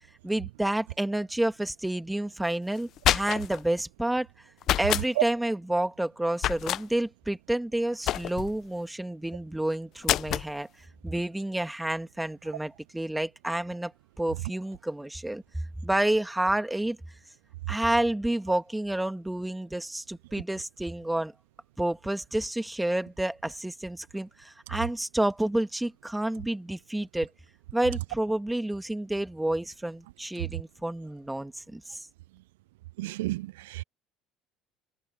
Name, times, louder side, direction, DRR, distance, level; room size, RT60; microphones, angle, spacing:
voice 1, 0.2-4.3 4.8-10.7 11.0-13.9 14.2-15.4 15.8-17.0 17.7-21.3 21.8-27.3 27.7-32.1, right 1 dB, 5° right, 2.7 m, -29 dB
sound 1, 2.8-3.6 4.6-5.1 6.4-6.8 8.1-8.6 10.0-10.5, left 13 dB, 55° left, 0.6 m, -27 dB
voice 2, 33.0-33.8, right 18 dB, 75° right, 0.4 m, -33 dB
hypercardioid pair, 60°, 0 cm